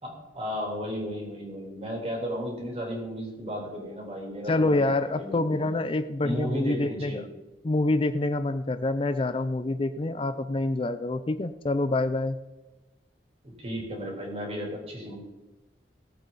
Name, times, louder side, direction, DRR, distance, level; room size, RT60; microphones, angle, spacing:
voice 1, 0.0-4.8 5.2-5.7 6.2-7.3 13.4-15.1, equal, 35° right, -1 dB, 3.6 m, -34 dB
voice 2, 4.5-7.3 7.6-12.4, left 2 dB, 30° left, 11 dB, 0.4 m, -26 dB
18.0 x 8.0 x 4.0 m, 1.1 s
head